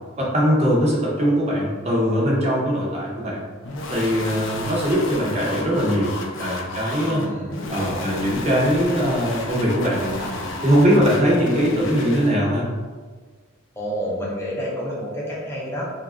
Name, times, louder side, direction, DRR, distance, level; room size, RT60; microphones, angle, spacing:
voice 1, 0.2-3.4 3.9-7.2 7.7-10.3 10.6-12.6, equal, 30° right, -5 dB, 0.6 m, -21 dB
sound 1, 3.6-12.4, left 2 dB, 60° left, 0.4 m, -32 dB
voice 2, 6.9-8.2 13.8-15.9, equal, 10° left, -5 dB, 0.6 m, -30 dB
2.9 x 2.4 x 3.5 m, 1.5 s
head